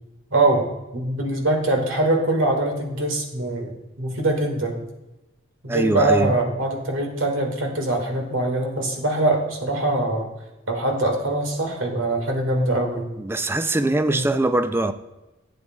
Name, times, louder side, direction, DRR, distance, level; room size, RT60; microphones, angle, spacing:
voice 1, 0.3-0.7 0.9-4.8 5.6-10.3 10.7-13.1 14.1-14.2, right 2 dB, 75° right, 1.7 m, -23 dB
voice 2, 5.7-6.3 13.2-14.9, right 2 dB, 10° right, 0.3 m, -22 dB
11.0 x 8.3 x 2.2 m
head